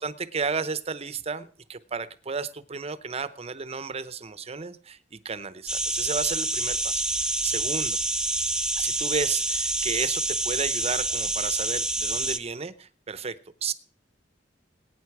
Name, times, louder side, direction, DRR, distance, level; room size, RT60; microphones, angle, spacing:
voice 1, 0.0-8.0 8.8-13.7, right 5 dB, 35° right, 14 dB, 0.8 m, -33 dB
sound 1, 5.7-12.4, right 2 dB, 5° right, 0.5 m, -27 dB
20.0 x 9.3 x 4.7 m, 0.41 s
head